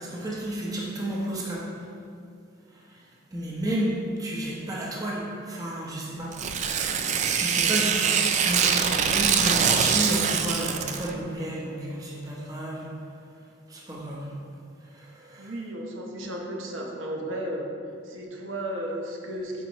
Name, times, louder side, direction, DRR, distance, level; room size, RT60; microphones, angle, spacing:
voice 1, 0.0-1.9 2.7-13.0 13.7-14.4 14.8-15.5, right 1 dB, 20° right, -4 dB, 0.8 m, -32 dB
Tearing, 6.3-11.1, right 7 dB, 35° right, 0.3 m, -24 dB
voice 2, 15.4-17.7 18.0-19.7, right 1 dB, 85° right, 0 dB, 0.9 m, -34 dB
9.1 x 4.2 x 3.0 m, 2.4 s
head